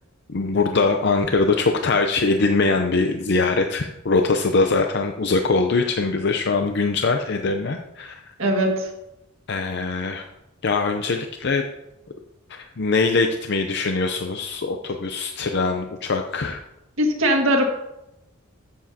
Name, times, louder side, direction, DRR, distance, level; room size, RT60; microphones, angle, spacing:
voice 1, 0.3-8.2 9.5-10.3 10.6-11.6 12.5-16.6, left 3 dB, 55° left, 5 dB, 0.6 m, -22 dB
voice 2, 8.4-8.9 17.0-17.6, equal, 75° right, 1 dB, 1.8 m, -20 dB
13.0 x 7.1 x 2.8 m, 0.90 s
head